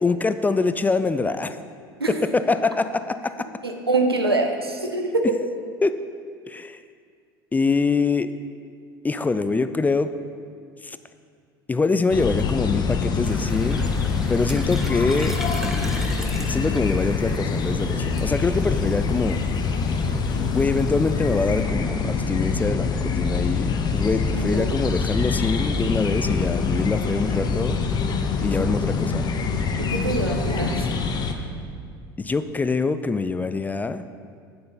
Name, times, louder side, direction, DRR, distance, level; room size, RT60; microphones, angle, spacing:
voice 1, 0.0-1.6 2.1-3.5 5.2-5.3 5.8-6.0 6.5-6.8 7.5-8.3 9.0-10.1 10.8-11.0 11.7-13.8 14.3-15.4 16.5-19.4 20.5-27.8 28.4-29.3 32.2-34.0, left 4 dB, 15° left, 12 dB, 0.4 m, -24 dB
voice 2, 3.6-5.4 24.3-24.7 29.8-30.9, right 2 dB, 85° right, 4 dB, 0.8 m, -24 dB
sound 1, 12.1-31.3, left 5 dB, 35° left, 0.8 m, -25 dB
sound 2, 13.2-21.6, equal, 5° right, 0.9 m, -36 dB
8.7 x 7.8 x 5.3 m, 2.2 s
figure-of-eight pair, 70°, 12 cm